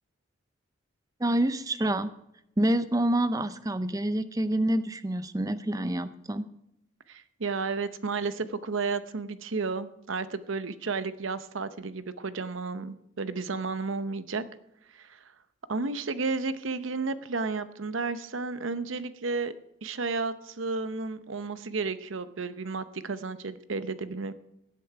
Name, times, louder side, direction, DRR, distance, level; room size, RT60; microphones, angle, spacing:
voice 1, 1.2-2.1 2.6-6.5, right 1 dB, 15° right, 13 dB, 0.5 m, -27 dB
voice 2, 7.1-14.4 14.9-15.2 15.7-19.5 19.8-24.3, right 4 dB, 75° right, 13 dB, 0.8 m, -32 dB
16.5 x 8.4 x 4.7 m, 0.82 s
head